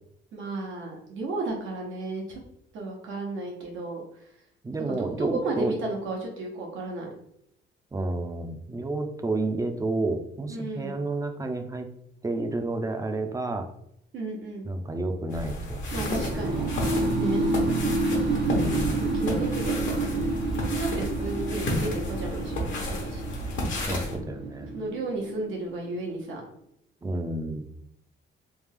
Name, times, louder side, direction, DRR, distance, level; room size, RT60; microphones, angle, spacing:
voice 1, 0.3-2.4 2.7-4.0 4.9-7.1 10.5-11.0 14.1-14.7 15.9-16.6 17.1-17.4 19.0-20.2 20.6-23.2 24.7-26.4, right 2 dB, 80° right, -1 dB, 1.2 m, -33 dB
voice 2, 4.6-5.7 7.9-11.9 12.2-13.7 14.7-16.8 18.5-19.1 23.9-24.7 27.0-27.7, right 2 dB, 15° right, 6 dB, 0.5 m, -31 dB
sound 1, 15.3-24.2, left 1 dB, 75° left, 1.0 m, -31 dB
sound 2, 15.9-25.9, right 2 dB, 50° right, 0.7 m, -29 dB
3.4 x 2.3 x 3.4 m, 0.74 s
cardioid pair, 90°, 20 cm